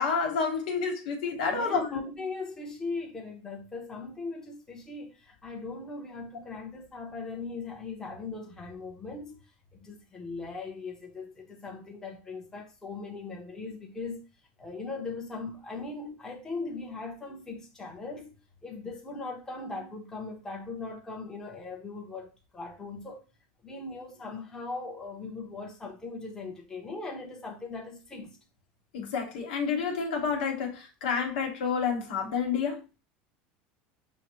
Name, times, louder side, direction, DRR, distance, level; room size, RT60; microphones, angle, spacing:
voice 1, 0.0-2.0 28.9-32.8, left 5 dB, 85° left, 1.3 m, -29 dB
voice 2, 1.5-9.4 9.7-14.2 14.6-18.3 18.6-23.2 23.6-28.4, left 3 dB, 10° left, 0.8 m, -39 dB
6.4 x 2.1 x 3.1 m
supercardioid pair, 140°, 5 cm